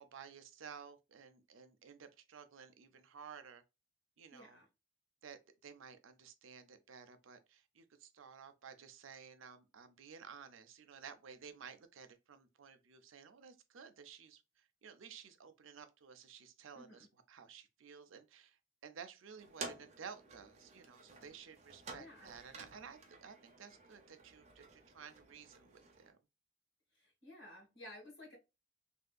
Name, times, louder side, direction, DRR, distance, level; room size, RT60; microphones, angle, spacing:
voice 1, 0.0-3.6 4.2-4.6 5.2-26.2, right 6 dB, 80° right, 0.5 m, -54 dB
voice 2, 4.3-4.7 16.7-17.1 21.9-22.3 26.9-28.4, left 1 dB, 65° left, 1.8 m, -54 dB
sound 1, 19.4-26.1, right 3 dB, 35° right, 0.7 m, -52 dB
3.4 x 2.7 x 2.3 m
head